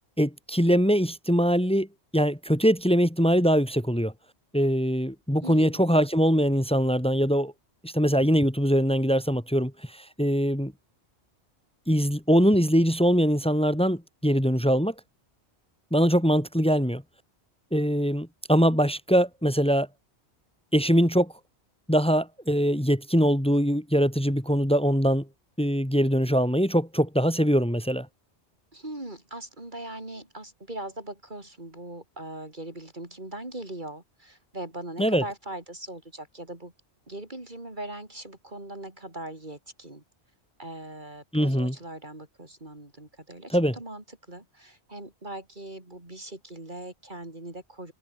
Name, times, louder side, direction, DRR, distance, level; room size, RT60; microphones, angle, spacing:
voice 1, 0.2-1.9 2.1-4.1 4.5-7.5 7.8-10.7 11.9-14.9 15.9-17.0 17.7-19.9 20.7-21.3 21.9-25.3 25.6-28.1 35.0-35.2 41.3-41.7 43.5-43.8, equal, 5° left, 3.4 m, -22 dB
voice 2, 5.4-5.8 28.7-36.7 37.1-40.0 40.6-47.9, right 1 dB, 45° right, 4.5 m, -40 dB
omnidirectional pair, 1.1 m